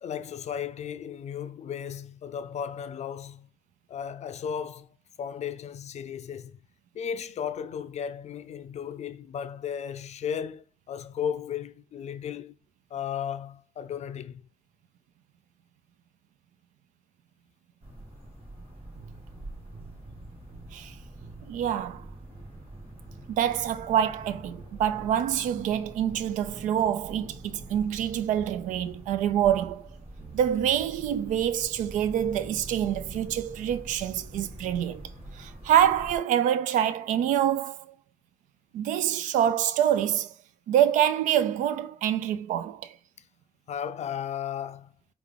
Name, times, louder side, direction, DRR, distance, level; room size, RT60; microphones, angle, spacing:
voice 1, 0.0-3.5 3.9-4.9 5.2-6.6 6.9-12.5 12.9-14.4 43.7-44.9, left 8 dB, 60° left, 0.5 m, -35 dB
sound 1, 17.8-36.2, right 1 dB, 50° right, 2.5 m, -45 dB
sound 2, 18.9-20.8 21.2-23.8 24.2-26.8 27.2-29.7 30.2-30.9, right 5 dB, 70° right, 1.3 m, -49 dB
voice 2, 21.4-22.1 23.3-29.9 30.3-37.9 38.7-40.3 40.7-43.0, right 10 dB, 85° right, 0.4 m, -26 dB
4.8 x 2.4 x 3.7 m
supercardioid pair, 60°, 13 cm